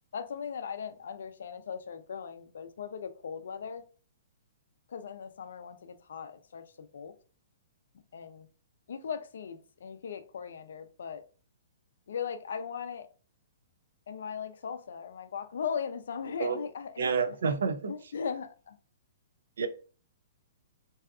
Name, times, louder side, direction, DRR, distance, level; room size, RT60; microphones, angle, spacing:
voice 1, 0.1-3.8 4.9-7.1 8.1-8.5 8.9-11.2 12.1-13.1 14.1-17.4 17.9-18.8, left 7 dB, 65° left, 0.3 m, -38 dB
voice 2, 17.0-17.9 19.6-19.7, right 5 dB, 85° right, 0.4 m, -29 dB
2.7 x 2.4 x 2.3 m
hypercardioid pair, 180°, 0 cm